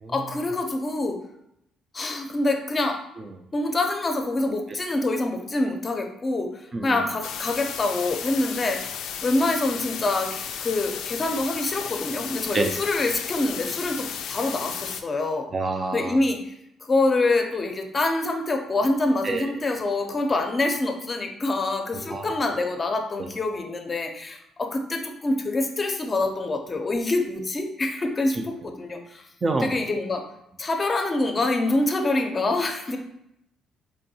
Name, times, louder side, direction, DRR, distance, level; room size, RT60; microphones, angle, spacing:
voice 1, 0.1-1.2 1.9-3.0 3.5-9.0 9.2-15.5 15.9-16.5 16.8-29.3 29.6-30.2 30.6-33.0, left 2 dB, 30° left, 4 dB, 0.6 m, -26 dB
sound 1, 7.2-15.0, left 8 dB, 80° left, 0.3 m, -34 dB
voice 2, 15.5-16.2 19.2-19.5 21.9-22.3 23.2-23.3 29.4-29.7, right 3 dB, 35° right, 5 dB, 0.4 m, -27 dB
4.4 x 2.6 x 2.7 m, 0.79 s
cardioid pair, 85°, 0 cm